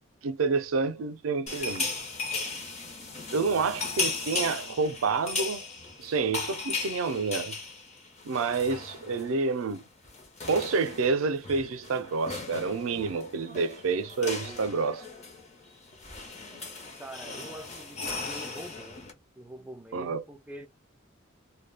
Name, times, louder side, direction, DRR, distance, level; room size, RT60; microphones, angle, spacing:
voice 1, 0.2-1.9 3.3-5.6 6.0-7.5 8.2-9.8 10.5-15.1 16.5-16.6 19.9-20.2, right 4 dB, 80° right, 0.4 m, -28 dB
sound 1, 1.5-9.3 9.6-9.8 10.1-19.1, left 4 dB, 35° left, 0.7 m, -37 dB
voice 2, 17.0-19.0 19.4-20.7, right 1 dB, 5° right, 0.4 m, -44 dB
2.3 x 2.1 x 3.2 m
head